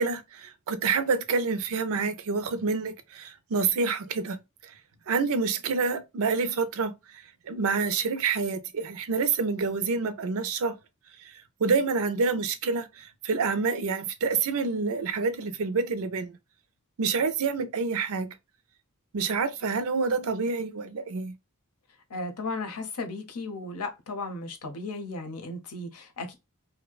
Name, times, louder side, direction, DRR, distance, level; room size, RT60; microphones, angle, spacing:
voice 1, 0.0-4.4 4.6-4.7 5.1-6.9 7.5-10.8 11.2-11.3 11.6-16.4 17.0-18.3 19.1-21.3, right 4 dB, 65° right, 0.5 m, -27 dB
voice 2, 22.1-26.3, left 3 dB, 90° left, 0.8 m, -35 dB
2.7 x 2.1 x 2.3 m
head